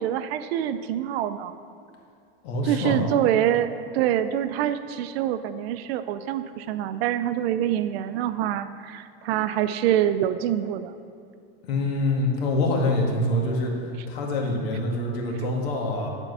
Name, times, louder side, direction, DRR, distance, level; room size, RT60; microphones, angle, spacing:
voice 1, 0.0-1.5 2.6-10.9, right 11 dB, 75° right, 11 dB, 0.5 m, -25 dB
voice 2, 2.4-3.0 11.6-13.7 14.1-16.1, left 1 dB, 80° left, 0 dB, 1.7 m, -25 dB
9.8 x 4.5 x 5.4 m, 2.5 s
supercardioid pair, 165°, 31 cm